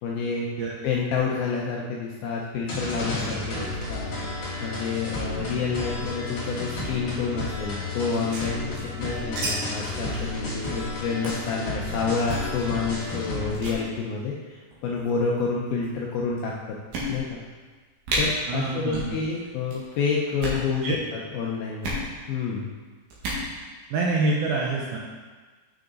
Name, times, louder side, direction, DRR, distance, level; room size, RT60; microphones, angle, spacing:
voice 1, 0.0-0.5 0.8-16.5 17.1-17.4 18.2-21.9 22.3-22.7, left 5 dB, 80° left, -3 dB, 2.2 m, -29 dB
sound 1, 2.7-13.5, left 2 dB, 40° left, 2.8 m, -32 dB
sound 2, 8.1-9.5 9.7-9.8 10.1-10.3 10.6-10.8 11.2-11.5 12.2-12.5 13.1-13.3 13.5-13.8 14.7-15.1 15.8-15.9 16.4-16.5 16.9-17.5 17.7-17.8 18.0-18.2 18.9-19.1 19.4-19.8 20.3-20.6 21.8-22.0 23.1-23.4, right 1 dB, 60° right, 3.2 m, -31 dB
voice 2, 18.5-19.2 20.8-21.0 23.9-25.0, right 3 dB, 75° right, -2 dB, 2.3 m, -26 dB
9.4 x 6.5 x 4.0 m, 1.4 s
omnidirectional pair, 5.1 m